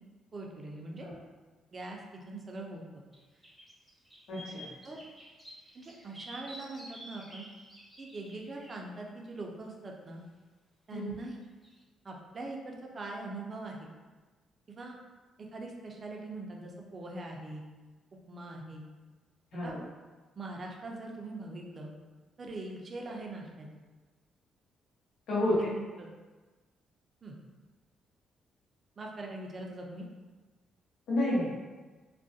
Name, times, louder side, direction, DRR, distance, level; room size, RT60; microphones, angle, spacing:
voice 1, 0.3-1.1 1.7-2.0 2.3-2.8 4.8-5.0 5.7-7.5 8.0-10.2 10.9-11.4 12.0-13.9 14.7-15.0 15.5-17.6 18.3-18.8 19.6-19.8 20.4-21.9 22.4-23.7 25.6-26.1 27.2-27.4 29.0-30.1, right 2 dB, 40° right, 0 dB, 0.4 m, -42 dB
sound 1, 3.1-3.2 3.4-8.8 11.6-11.8, equal, 5° right, 0.7 m, -50 dB
voice 2, 4.3-4.7 10.9-11.1 19.5-19.8 25.3-25.5 31.1-31.6, left 1 dB, 80° left, -7 dB, 0.9 m, -30 dB
2.3 x 2.1 x 2.6 m, 1.3 s
cardioid pair, 90°, 0 cm